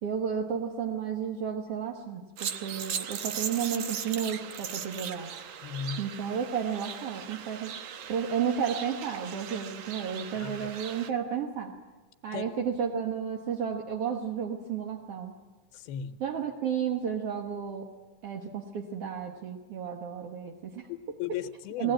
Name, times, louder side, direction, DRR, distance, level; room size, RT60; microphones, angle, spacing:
voice 1, 0.0-5.3 6.0-7.7 8.1-11.7 12.2-15.3 16.2-17.9 18.2-20.9 21.8-21.9, right 7 dB, 60° right, 1 dB, 1.6 m, -32 dB
sound 1, 2.4-11.1, right 8 dB, 90° right, 1.4 m, -38 dB
voice 2, 5.6-6.1 10.4-10.7 12.3-12.5 15.7-16.2 20.9-21.9, left 8 dB, 85° left, 9 dB, 2.7 m, -36 dB
20.0 x 18.5 x 8.9 m, 1.2 s
omnidirectional pair, 4.3 m